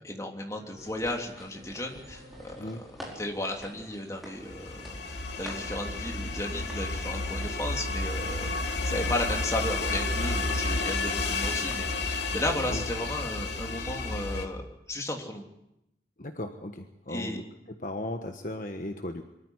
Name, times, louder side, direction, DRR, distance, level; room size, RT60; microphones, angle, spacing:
voice 1, 0.0-2.8 3.1-14.6 14.9-15.4 17.1-17.4, left 1 dB, 20° left, 1 dB, 3.1 m, -34 dB
sound 1, 0.6-12.1, equal, 40° right, 7.5 m, -56 dB
sound 2, 0.8-11.7, equal, ahead, 4.8 m, -49 dB
sound 3, 4.4-14.5, left 3 dB, 85° left, 2.5 m, -31 dB
voice 2, 16.2-19.2, left 1 dB, 45° left, 5 dB, 1.3 m, -36 dB
24.0 x 14.0 x 9.9 m, 0.85 s
head